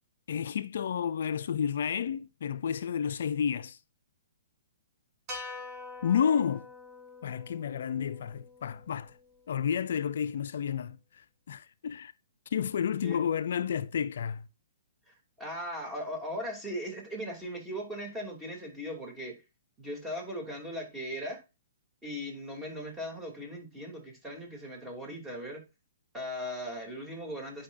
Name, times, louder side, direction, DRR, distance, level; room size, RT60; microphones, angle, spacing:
voice 1, 0.3-3.8 6.0-6.7 7.2-9.2 9.5-12.1 12.5-14.5, left 8 dB, 65° left, 0.4 m, -31 dB
sound 1, 5.3-9.6, left 3 dB, 35° right, 3.1 m, -45 dB
voice 2, 15.1-19.4 19.8-21.4 22.0-25.6 26.1-27.6, equal, 10° right, 2.9 m, -38 dB
10.5 x 5.2 x 2.6 m
hypercardioid pair, 130°, 0 cm